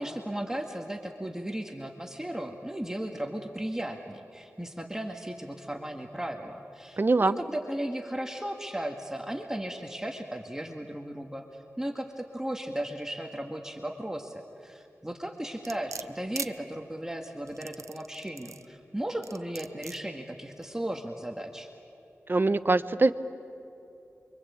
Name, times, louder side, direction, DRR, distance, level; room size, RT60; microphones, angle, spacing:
voice 1, 0.0-21.7, right 1 dB, 10° right, 3 dB, 1.8 m, -36 dB
voice 2, 7.0-7.4 22.3-23.1, right 3 dB, 40° right, 12 dB, 1.0 m, -23 dB
sound 1, 15.6-16.5 17.5-18.7 19.2-20.0 20.6-20.7, right 5 dB, 85° right, 0.7 m, -39 dB
28.5 x 24.0 x 8.5 m, 2.9 s
wide cardioid pair, 70°, 5 cm